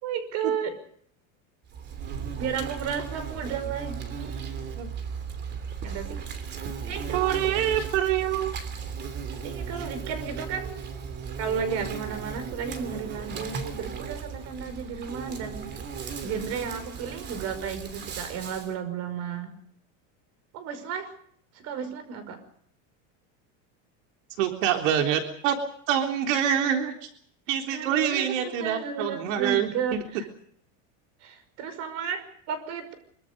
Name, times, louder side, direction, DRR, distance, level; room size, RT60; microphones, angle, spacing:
voice 1, 0.0-0.8 2.4-4.5 5.8-6.2 6.9-7.6 9.4-10.7 11.4-15.7 16.2-19.5 20.5-21.1 21.5-22.4 27.7-30.3 31.2-32.9, right 7 dB, 45° right, 10 dB, 5.5 m, -33 dB
Insect, 1.7-18.7, right 6 dB, 25° right, 3.0 m, -36 dB
voice 2, 7.1-8.5 24.4-25.6 25.9-27.1 27.5-30.0, right 10 dB, 80° right, 4 dB, 3.8 m, -26 dB
25.0 x 24.0 x 5.4 m, 0.64 s
cardioid pair, 175°, 38 cm